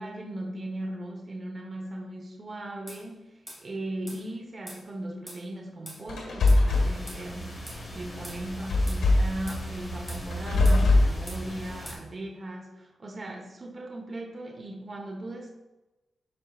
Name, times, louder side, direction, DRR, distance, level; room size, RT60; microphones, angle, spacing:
voice 1, 0.0-3.3 3.6-7.6 7.9-15.5, right 1 dB, 35° right, 1 dB, 1.0 m, -38 dB
sound 1, 2.9-3.0 3.5-3.6 4.1-4.2 4.7-4.8 5.3-5.4 5.9-6.0 6.5-6.6 7.1-7.2 7.7-7.8 8.2-8.4 8.9-9.0 9.5-9.6 10.1-10.2 10.6-10.8 11.3-11.4 11.9-12.0, equal, 5° left, 2.6 m, -43 dB
sound 2, 6.1-6.9 8.7-9.4 10.3-11.1, left 2 dB, 90° left, 1.7 m, -21 dB
sound 3, 6.7-11.9, right 1 dB, 20° left, 2.5 m, -38 dB
12.0 x 4.8 x 2.4 m, 1.1 s
wide cardioid pair, 110°, 0 cm